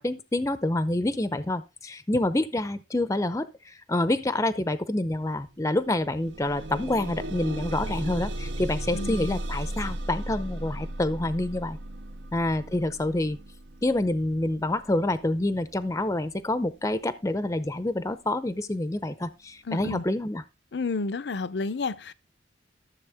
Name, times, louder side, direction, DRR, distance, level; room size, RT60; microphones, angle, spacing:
voice 1, 0.0-11.8 12.3-13.4 13.8-20.4, left 1 dB, 15° left, 0.6 m, -27 dB
sound 1, 5.3-5.4 5.8-16.8 17.6-17.7 18.1-18.2, right 1 dB, 70° right, 0.8 m, -36 dB
voice 2, 8.9-9.4 19.7-20.0 20.7-22.1, left 3 dB, 65° left, 0.6 m, -30 dB
13.0 x 7.2 x 3.4 m
head